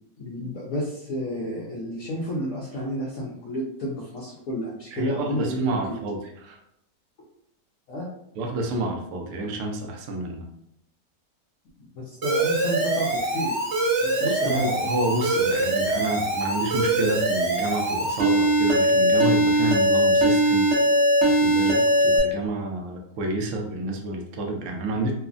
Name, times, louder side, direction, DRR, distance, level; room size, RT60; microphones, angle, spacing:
voice 1, 0.2-6.0 7.9-8.1 11.8-13.6 14.0-14.7, equal, 65° left, -5 dB, 1.0 m, -31 dB
voice 2, 4.9-6.6 8.4-10.5 14.2-20.7 21.2-25.1, right 2 dB, 75° right, 3 dB, 0.7 m, -29 dB
Alarm, 12.2-22.2, right 1 dB, 50° right, 0.9 m, -22 dB
3.1 x 2.0 x 2.4 m, 0.76 s
omnidirectional pair, 1.8 m